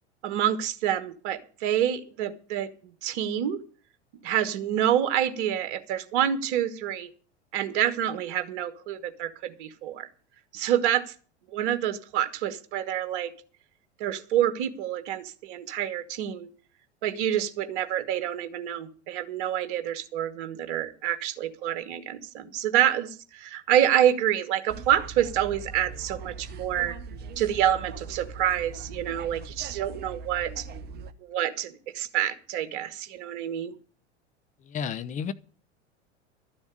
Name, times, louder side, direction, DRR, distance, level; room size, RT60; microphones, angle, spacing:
voice 1, 0.2-2.7 3.0-3.6 4.2-7.1 7.5-10.1 10.5-11.0 11.5-13.3 14.0-16.5 17.0-26.9 27.4-30.7 31.2-33.7, right 11 dB, 50° right, 1.4 m, -27 dB
sound 1, 24.7-31.1, right 4 dB, 30° right, 0.9 m, -41 dB
voice 2, 34.6-35.3, left 7 dB, 20° left, 0.7 m, -31 dB
12.5 x 7.1 x 8.5 m
figure-of-eight pair, 85°, 35 cm